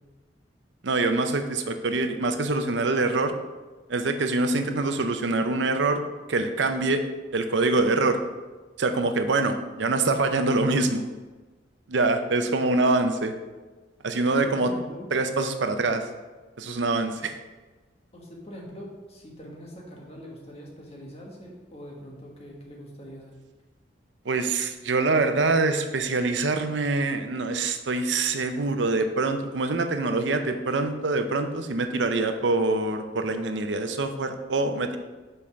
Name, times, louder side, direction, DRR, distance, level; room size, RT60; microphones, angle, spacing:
voice 1, 0.8-3.3 3.9-6.0 6.3-7.0 7.3-8.2 8.8-11.1 11.9-13.3 14.0-14.7 15.1-16.0 16.6-17.3 24.3-35.0, right 3 dB, 85° right, 7 dB, 0.7 m, -25 dB
voice 2, 14.3-15.1 18.1-23.4, equal, 35° left, -2 dB, 1.4 m, -43 dB
5.5 x 5.2 x 5.8 m, 1.2 s
head